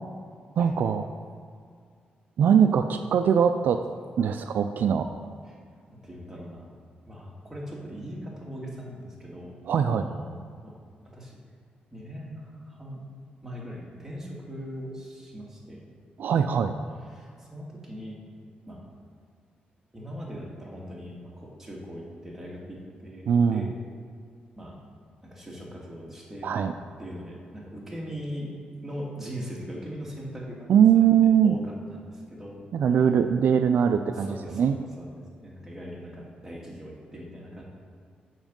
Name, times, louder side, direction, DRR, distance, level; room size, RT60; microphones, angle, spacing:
voice 1, 0.6-1.1 2.4-3.8 4.2-5.1 9.7-10.1 16.2-16.7 23.3-23.6 26.4-26.7 30.7-31.6 32.7-34.8, right 8 dB, 70° right, 8 dB, 0.4 m, -21 dB
voice 2, 5.8-6.7 7.1-9.5 9.8-10.7 11.0-11.4 11.9-13.0 13.4-15.8 16.3-16.5 17.1-18.2 18.7-18.8 19.9-23.7 24.6-24.8 25.2-26.5 27.0-28.5 28.8-30.7 30.9-31.2 31.4-32.6 34.1-37.6, equal, 10° right, -4 dB, 2.2 m, -40 dB
7.3 x 6.1 x 5.3 m, 2.1 s
cardioid pair, 100°, 3 cm